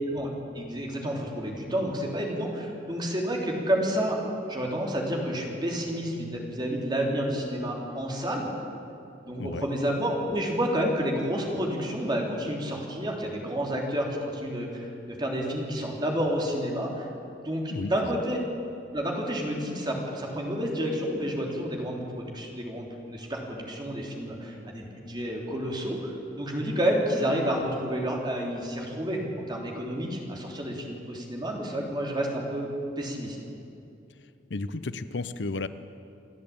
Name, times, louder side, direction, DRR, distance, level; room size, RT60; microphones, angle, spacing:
voice 1, 0.1-4.2 4.5-8.5 9.2-17.1 17.4-18.4 18.9-29.2 29.5-33.4, equal, 25° right, -1 dB, 3.4 m, -30 dB
voice 2, 17.7-18.2 34.5-35.7, left 3 dB, 80° left, 13 dB, 0.7 m, -33 dB
28.5 x 11.0 x 8.7 m, 2.7 s
head